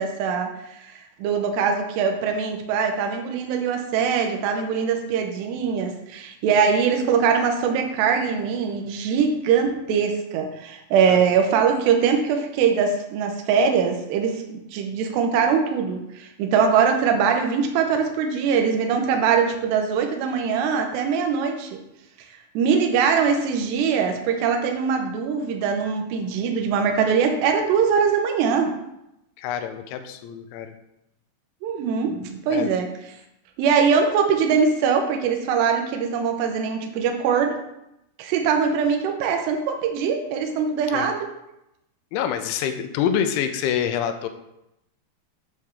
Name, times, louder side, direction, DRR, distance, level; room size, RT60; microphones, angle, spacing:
voice 1, 0.0-21.8 22.5-28.8 31.6-32.9 33.6-37.6 38.2-41.2, right 6 dB, 75° right, 4 dB, 2.8 m, -22 dB
voice 2, 29.4-30.8 32.5-32.7 40.9-41.1 42.1-44.3, left 8 dB, 85° left, 8 dB, 2.9 m, -26 dB
8.6 x 3.5 x 6.4 m, 0.85 s
omnidirectional pair, 5.4 m